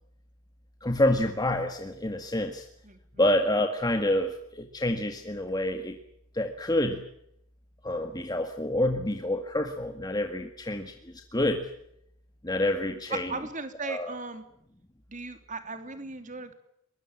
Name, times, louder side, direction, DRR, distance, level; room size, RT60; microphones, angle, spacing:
voice 1, 0.8-2.7 3.2-6.0 6.3-7.0 7.8-11.7 12.4-13.4 13.8-14.2, left 1 dB, 20° left, 5 dB, 1.9 m, -28 dB
voice 2, 13.3-14.4 15.1-16.5, right 3 dB, 35° right, 9 dB, 3.1 m, -37 dB
24.0 x 21.5 x 7.5 m, 0.73 s
head